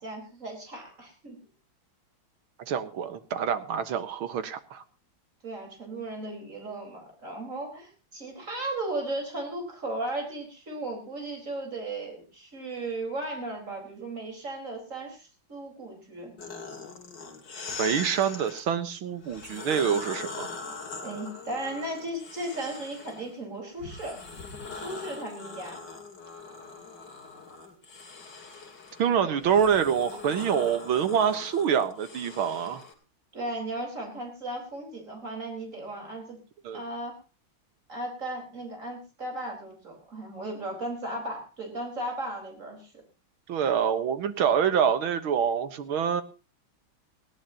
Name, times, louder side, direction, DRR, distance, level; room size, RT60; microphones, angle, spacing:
voice 1, 0.0-1.3 5.4-16.3 21.0-24.2 24.7-25.8 29.2-29.3 33.3-36.4 36.7-37.2 37.9-42.9, right 2 dB, 35° right, 1 dB, 5.0 m, -36 dB
voice 2, 2.7-4.8 17.8-20.5 29.0-32.8 36.6-36.8 43.5-46.2, right 8 dB, 80° right, 10 dB, 2.1 m, -26 dB
sound 1, 16.4-18.6 19.2-23.3 23.8-32.9, left 4 dB, 55° left, 3.1 m, -41 dB
19.0 x 16.5 x 2.9 m, 0.33 s
omnidirectional pair, 2.2 m